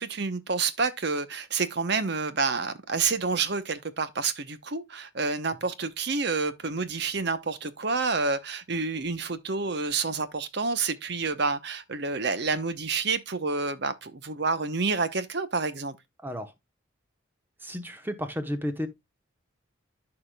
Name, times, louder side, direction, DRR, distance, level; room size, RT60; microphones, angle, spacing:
voice 1, 0.0-16.0, right 4 dB, 55° right, 0.8 m, -29 dB
voice 2, 17.6-18.9, equal, 10° right, 1.0 m, -32 dB
14.0 x 4.9 x 2.3 m
head